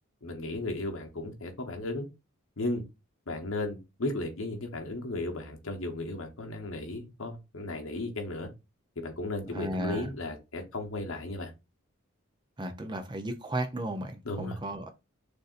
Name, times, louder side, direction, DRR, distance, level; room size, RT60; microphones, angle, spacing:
voice 1, 0.2-2.1 2.6-2.8 3.3-8.5 9.0-11.5 14.2-14.6, left 2 dB, 70° left, 1.0 m, -35 dB
voice 2, 9.5-10.1 12.6-14.9, right 1 dB, 20° right, 0.5 m, -34 dB
6.6 x 2.7 x 2.5 m
head